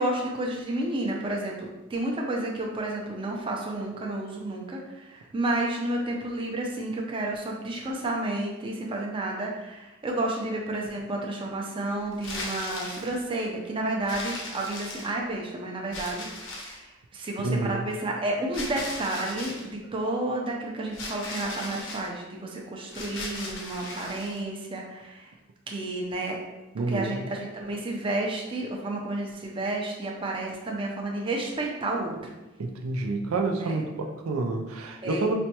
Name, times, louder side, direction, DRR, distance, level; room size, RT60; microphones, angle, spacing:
voice 1, 0.0-25.3 25.7-26.4 26.9-32.3 33.6-33.8 35.0-35.3, right 2 dB, 25° right, -1 dB, 0.5 m, -31 dB
sound 1, 12.1-13.2 14.1-15.3 15.9-16.9 18.5-19.7 20.9-22.1 22.9-24.4, left 2 dB, 65° left, 0.6 m, -37 dB
voice 2, 17.4-17.8 26.7-27.2 32.6-35.3, right 3 dB, 90° right, 4 dB, 0.4 m, -28 dB
4.1 x 2.2 x 2.8 m, 1.0 s
head